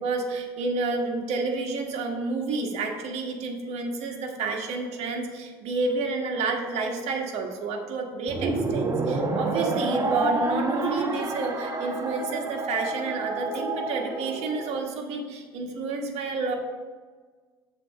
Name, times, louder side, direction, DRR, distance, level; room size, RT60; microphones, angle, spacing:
voice 1, 0.0-16.5, right 3 dB, 60° right, 3 dB, 1.4 m, -30 dB
sound 1, 8.3-14.8, right 2 dB, 25° right, 1.1 m, -28 dB
7.5 x 4.2 x 6.4 m, 1.5 s
hypercardioid pair, 75°, 12 cm